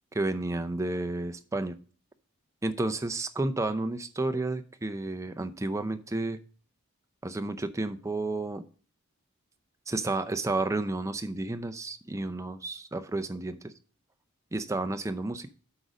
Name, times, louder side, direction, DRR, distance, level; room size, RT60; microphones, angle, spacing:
voice 1, 0.1-1.8 2.6-6.4 7.2-8.6 9.9-13.7 14.5-15.5, right 2 dB, 15° right, 10 dB, 0.5 m, -31 dB
8.2 x 4.9 x 5.1 m, 0.40 s
head